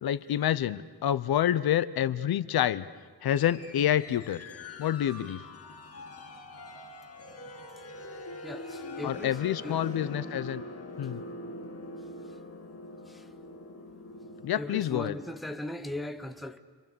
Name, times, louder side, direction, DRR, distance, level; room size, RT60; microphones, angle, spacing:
voice 1, 0.0-2.8 3.2-4.4 4.8-5.4 9.0-10.6 11.0-11.2 14.4-15.1, left 11 dB, 70° left, 0.7 m, -28 dB
sound 1, 3.3-15.6, left 2 dB, 40° left, 2.1 m, -43 dB
voice 2, 8.3-10.1 13.1-13.3 14.5-16.6, left 1 dB, ahead, 0.7 m, -39 dB
30.0 x 24.0 x 6.9 m
wide cardioid pair, 170°, 39 cm